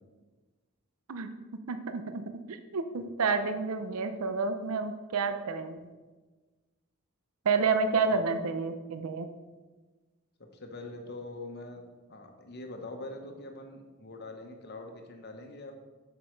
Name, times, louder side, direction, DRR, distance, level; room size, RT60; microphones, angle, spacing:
voice 1, 1.7-2.2 2.5-5.9 7.5-9.3, right 4 dB, 85° right, 8 dB, 0.6 m, -29 dB
voice 2, 10.5-11.8 12.1-15.7, left 2 dB, 45° left, 4 dB, 1.1 m, -43 dB
7.7 x 5.9 x 5.2 m, 1.3 s
head